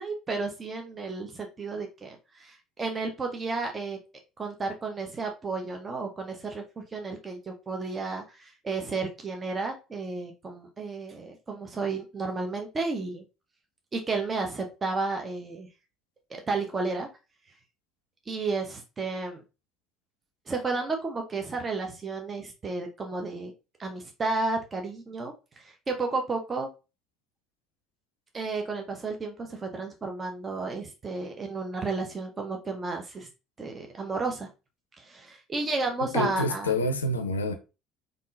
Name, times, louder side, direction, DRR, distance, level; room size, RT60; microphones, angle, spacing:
voice 1, 0.0-4.0 4.4-13.2 13.9-15.7 16.3-17.1 18.3-19.4 20.5-23.5 23.8-26.7 28.3-33.3 33.6-34.5 35.0-36.7, right 3 dB, 25° right, 0.7 m, -32 dB
voice 2, 36.1-37.5, left 1 dB, 80° left, 0.4 m, -27 dB
3.6 x 2.5 x 2.5 m
figure-of-eight pair, 60°, 0 cm